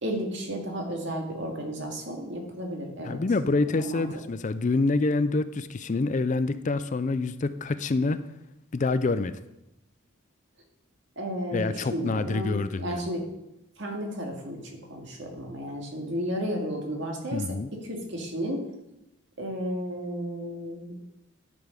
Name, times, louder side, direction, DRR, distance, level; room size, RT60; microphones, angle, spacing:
voice 1, 0.0-3.2 3.8-4.1 11.2-13.3 13.8-17.4 17.8-18.6 19.4-20.9, equal, 60° right, 1 dB, 2.1 m, -33 dB
voice 2, 3.0-8.2 8.7-9.4 11.5-13.0 17.3-17.7, left 3 dB, 35° left, 12 dB, 0.4 m, -26 dB
11.5 x 6.9 x 5.2 m, 0.88 s
head